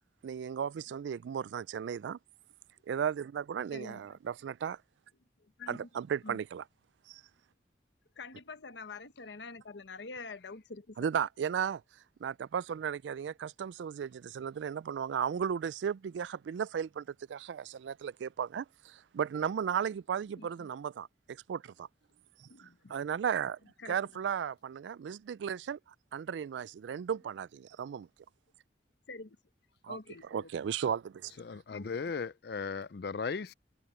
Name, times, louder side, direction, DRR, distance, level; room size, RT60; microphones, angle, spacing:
voice 1, 0.2-2.2 2.9-4.8 5.7-6.6 7.1-7.2 11.0-11.8 12.2-21.9 22.4-23.6 23.9-25.8 26.1-28.1 29.8-30.0 30.3-31.3, right 8 dB, 85° right, 0.3 m, -35 dB
voice 2, 3.7-4.2 5.4-5.9 6.2-6.4 8.2-11.1 20.4-20.7 22.4-22.9 23.8-24.0 29.1-29.4 29.9-30.5 31.7-31.9, left 3 dB, 85° left, 1.1 m, -46 dB
voice 3, 31.4-33.5, left 5 dB, 60° left, 0.5 m, -37 dB
head